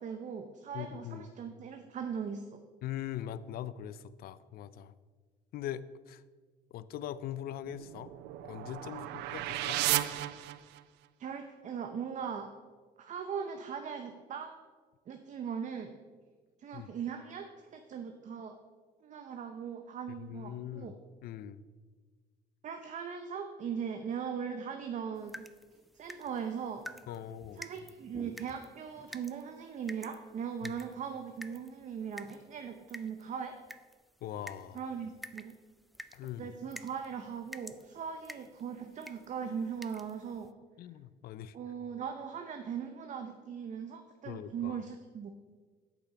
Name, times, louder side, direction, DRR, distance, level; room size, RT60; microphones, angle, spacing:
voice 1, 0.0-2.6 11.2-12.5 13.0-14.6 15.1-15.9 16.6-18.6 19.0-20.9 22.6-25.5 25.9-26.8 27.5-33.5 34.7-35.5 36.4-40.5 41.5-45.3, right 7 dB, 45° right, 6 dB, 0.7 m, -39 dB
voice 2, 0.7-1.3 2.8-4.9 5.5-6.2 6.7-8.1 8.4-9.8 16.7-16.9 20.2-21.0 21.2-21.6 27.1-27.6 30.6-30.7 34.2-34.8 36.1-36.5 40.8-41.6 44.3-44.8, left 11 dB, 65° left, 16 dB, 0.4 m, -41 dB
sound 1, 7.6-11.1, right 14 dB, 85° right, 0.5 m, -34 dB
sound 2, 25.1-40.5, equal, ahead, 0.3 m, -51 dB
8.3 x 6.8 x 5.0 m, 1.5 s
cardioid pair, 110°, 17 cm